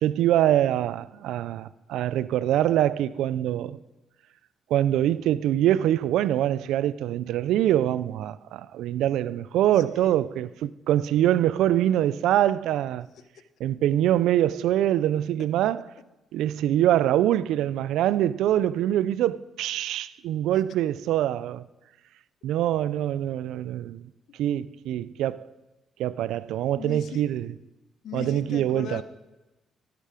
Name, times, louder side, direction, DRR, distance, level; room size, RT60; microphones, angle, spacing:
voice 1, 0.0-3.8 4.7-13.1 13.6-15.8 16.3-21.6 22.4-24.0 24.4-25.5 26.0-27.5 28.1-29.0, right 12 dB, 85° right, 0.4 m, -24 dB
voice 2, 9.7-10.2 13.1-13.2 26.8-27.2 28.0-29.0, left 7 dB, 70° left, 0.8 m, -38 dB
13.5 x 8.2 x 4.9 m
cardioid pair, 90°, 0 cm